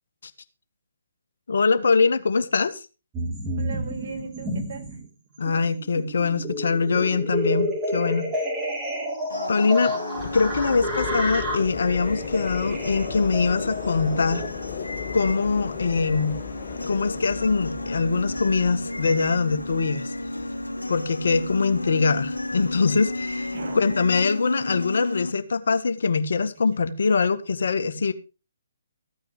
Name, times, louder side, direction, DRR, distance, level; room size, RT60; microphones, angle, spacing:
voice 1, 1.5-2.8 5.4-8.3 9.5-9.9 10.3-14.5 15.1-16.3 16.9-20.1 20.9-28.1, left 4 dB, 65° left, 1.7 m, -23 dB
sound 1, 3.1-5.0 5.4-14.5, equal, 15° right, 4.5 m, -30 dB
voice 2, 3.6-5.1 10.7-10.9 23.5-24.0, right 4 dB, 55° right, 4.7 m, -38 dB
sound 2, 9.3-25.3, left 1 dB, 90° left, 1.4 m, -33 dB
sound 3, 10.2-24.1, left 10 dB, 35° left, 1.1 m, -38 dB
15.0 x 9.1 x 5.1 m
figure-of-eight pair, 135°, 0 cm